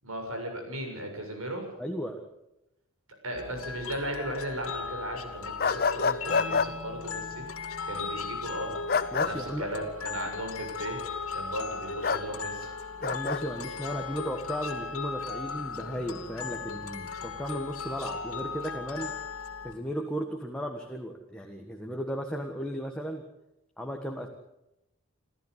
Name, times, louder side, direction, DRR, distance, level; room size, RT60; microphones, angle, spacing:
voice 1, 0.0-1.7 3.2-7.4 7.8-8.7 9.2-11.0 11.3-12.7, right 1 dB, 80° right, 3 dB, 7.2 m, -36 dB
voice 2, 1.8-2.2 9.1-9.7 13.0-19.1 19.6-23.2 23.8-24.3, equal, 5° left, 2 dB, 1.5 m, -35 dB
sound 1, 3.3-19.7, left 4 dB, 85° left, 2.4 m, -37 dB
sound 2, 5.6-6.7 8.9-9.3 12.0-12.2 13.0-13.4, left 5 dB, 45° left, 0.7 m, -26 dB
28.0 x 14.0 x 8.3 m, 0.90 s
head